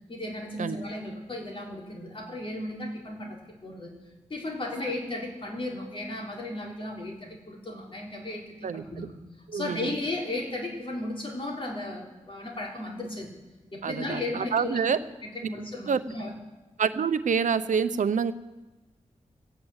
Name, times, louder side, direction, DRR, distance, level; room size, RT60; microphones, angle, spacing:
voice 1, 0.1-3.9 4.3-9.1 9.5-13.3 13.7-14.9 15.2-16.3, left 2 dB, 45° left, -1 dB, 3.6 m, -35 dB
voice 2, 8.6-9.1 9.5-9.9 13.8-15.0 15.9-16.0 16.8-18.3, right 6 dB, 85° right, 12 dB, 0.7 m, -27 dB
16.0 x 8.9 x 8.0 m, 1.1 s
wide cardioid pair, 85°, 13 cm